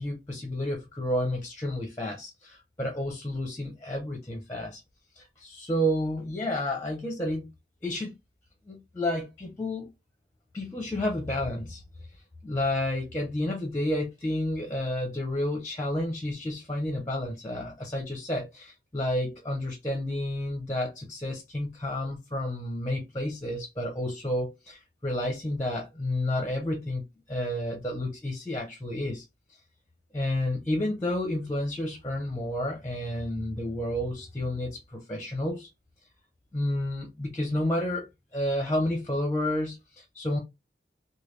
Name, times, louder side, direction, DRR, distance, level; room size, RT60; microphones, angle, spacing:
voice 1, 0.0-4.8 5.2-7.5 7.8-8.2 8.7-9.9 10.5-11.8 12.1-12.2 12.4-29.2 29.5-29.6 30.1-35.7 36.5-38.1 38.3-40.4, left 1 dB, 15° left, 0.6 m, -30 dB
3.3 x 2.2 x 3.1 m
head